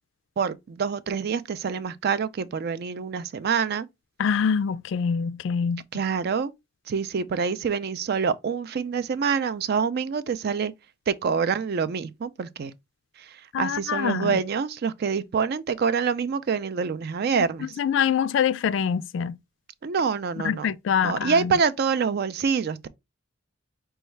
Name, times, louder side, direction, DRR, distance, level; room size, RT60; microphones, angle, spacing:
voice 1, 0.4-3.9 5.9-6.5 6.9-10.7 11.1-12.7 13.6-17.7 19.8-20.7 21.0-22.9, right 6 dB, 50° right, 0.4 m, -26 dB
voice 2, 4.2-5.8 13.5-14.4 17.8-19.4 20.4-21.6, left 7 dB, 65° left, 0.3 m, -25 dB
5.2 x 2.3 x 3.2 m
head